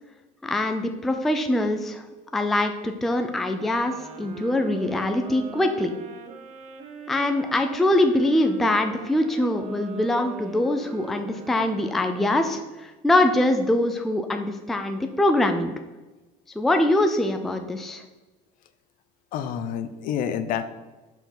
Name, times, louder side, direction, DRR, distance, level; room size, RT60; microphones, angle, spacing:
voice 1, 0.4-2.0 2.3-5.9 7.1-15.7 16.6-18.0, left 1 dB, ahead, 6 dB, 0.3 m, -23 dB
sound 1, 3.5-12.8, right 4 dB, 45° right, 1.0 m, -42 dB
voice 2, 19.3-20.6, left 8 dB, 55° left, 11 dB, 0.6 m, -28 dB
5.6 x 4.5 x 5.8 m, 1.1 s
cardioid pair, 170°, 17 cm